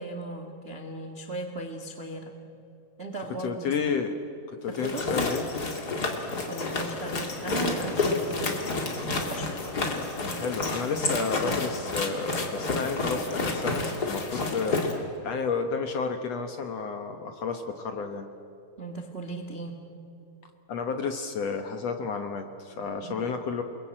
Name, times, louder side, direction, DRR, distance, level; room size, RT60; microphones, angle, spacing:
voice 1, 0.0-2.3 3.0-3.7 4.7-5.1 6.5-8.6 9.1-9.5 18.8-19.8 23.0-23.3, right 2 dB, 30° right, 4 dB, 1.1 m, -37 dB
voice 2, 3.4-4.2 4.6-5.5 10.2-18.3 20.7-23.6, left 5 dB, 60° left, 6 dB, 1.9 m, -31 dB
sound 1, 4.7-14.9, left 3 dB, 30° left, 2.5 m, -30 dB
29.0 x 21.0 x 8.8 m, 2.8 s
omnidirectional pair, 4.0 m